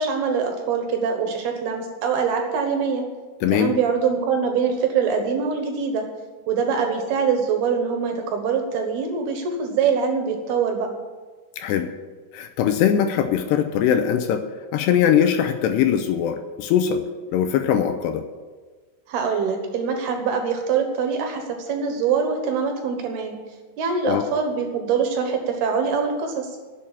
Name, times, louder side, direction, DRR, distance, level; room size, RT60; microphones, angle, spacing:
voice 1, 0.0-3.1 3.5-6.1 6.5-10.9 19.1-23.4 23.8-26.6, right 6 dB, 70° right, 4 dB, 2.9 m, -24 dB
voice 2, 11.6-11.9 12.3-14.4 14.7-17.0 17.3-18.2 24.0-24.3, left 9 dB, 80° left, 7 dB, 2.7 m, -21 dB
11.5 x 7.5 x 8.9 m, 1.4 s
omnidirectional pair, 5.3 m